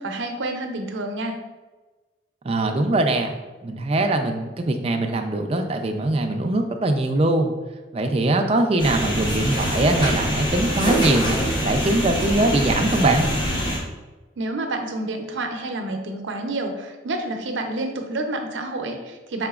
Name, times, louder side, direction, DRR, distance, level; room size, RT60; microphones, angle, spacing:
voice 1, 0.0-1.4 14.4-19.5, right 2 dB, 85° right, 4 dB, 0.6 m, -29 dB
voice 2, 2.4-3.3 3.6-7.5 7.9-13.3, right 2 dB, 30° right, 5 dB, 0.4 m, -22 dB
sound 1, 8.8-13.8, equal, 25° left, 0.8 m, -24 dB
4.9 x 3.7 x 2.3 m, 1.2 s
head